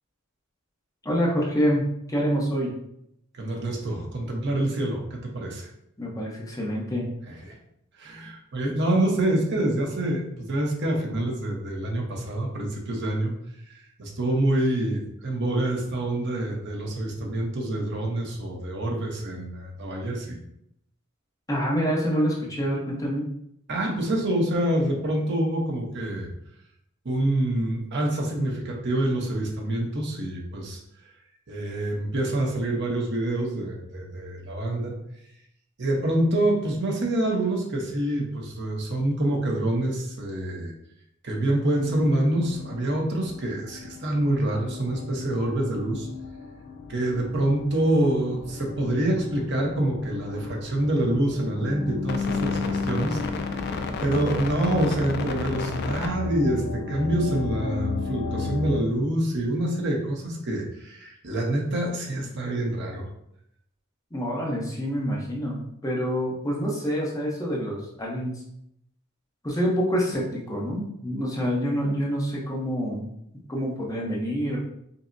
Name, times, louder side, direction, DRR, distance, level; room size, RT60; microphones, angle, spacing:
voice 1, 1.0-2.7 6.0-7.0 21.5-23.3 64.1-68.3 69.4-73.1 73.5-74.6, equal, 15° left, -3 dB, 0.7 m, -27 dB
voice 2, 3.3-5.7 7.3-7.6 8.0-13.3 13.7-20.4 23.7-26.3 27.0-30.8 31.5-34.9 35.8-40.7 41.2-46.1 46.9-63.1, right 1 dB, 55° right, 0 dB, 0.8 m, -26 dB
sound 1, 41.8-58.8, left 4 dB, 50° left, 0.4 m, -33 dB
5.3 x 2.0 x 2.6 m, 0.76 s
head